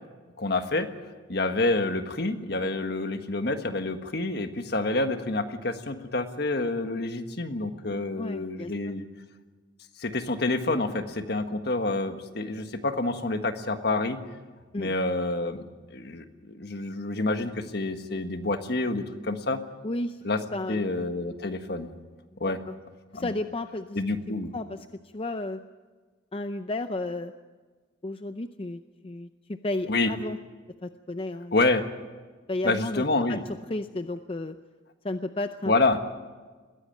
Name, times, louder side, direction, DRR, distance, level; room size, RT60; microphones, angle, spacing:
voice 1, 0.4-0.9 1.3-9.1 10.0-14.2 14.8-15.6 15.9-19.6 20.2-20.4 20.7-21.9 22.4-22.6 23.1-23.3 23.9-24.5 29.9-30.1 31.5-31.8 32.6-33.4 35.7-36.0, left 2 dB, 60° left, 8 dB, 1.5 m, -28 dB
voice 2, 8.2-8.9 14.7-14.9 19.8-20.2 20.5-20.8 22.4-22.7 23.1-24.0 24.3-24.8 25.1-25.6 26.3-27.3 28.0-30.4 30.8-31.5 32.5-33.0 33.3-33.4 33.7-34.6 35.0-35.7, left 2 dB, 30° left, 9 dB, 0.6 m, -33 dB
21.0 x 16.0 x 9.3 m, 1.4 s
head